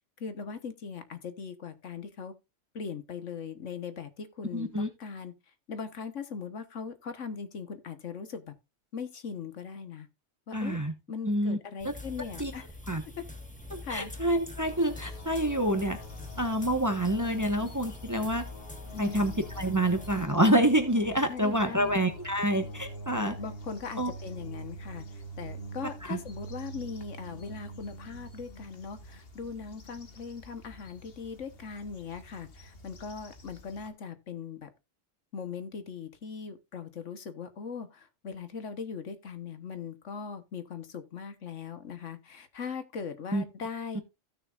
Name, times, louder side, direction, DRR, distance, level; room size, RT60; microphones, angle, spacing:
voice 1, 0.2-2.3 2.7-5.3 5.7-8.5 8.9-10.1 10.5-10.8 11.1-12.7 13.2-13.3 13.8-14.1 18.9-19.3 21.3-22.0 23.1-34.7 35.3-44.0, left 6 dB, 70° left, 1.5 m, -40 dB
voice 2, 4.5-4.9 10.5-10.9 11.2-11.6 11.8-11.9 12.4-12.5 12.9-13.0 13.7-16.0 16.4-18.4 19.0-23.4 24.0-24.1 26.0-26.2 43.3-43.4 43.9-44.0, right 1 dB, 15° right, 1.1 m, -27 dB
sound 1, 11.8-20.2, left 1 dB, 5° left, 1.3 m, -44 dB
sound 2, 14.6-33.9, right 1 dB, 50° left, 1.6 m, -46 dB
15.5 x 6.4 x 2.4 m
omnidirectional pair, 1.3 m